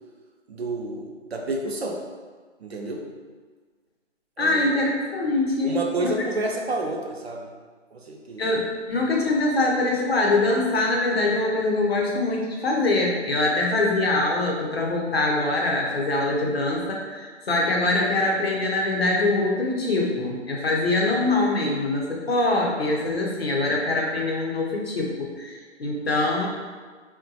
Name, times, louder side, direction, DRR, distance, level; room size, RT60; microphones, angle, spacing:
voice 1, 0.5-2.0 2.6-3.1 4.4-4.7 5.6-7.5 7.9-8.5, right 2 dB, 60° right, 1 dB, 0.5 m, -29 dB
voice 2, 4.4-6.1 8.4-26.5, left 2 dB, 55° left, -1 dB, 0.7 m, -23 dB
3.7 x 2.2 x 2.6 m, 1.5 s
hypercardioid pair, 165°, 37 cm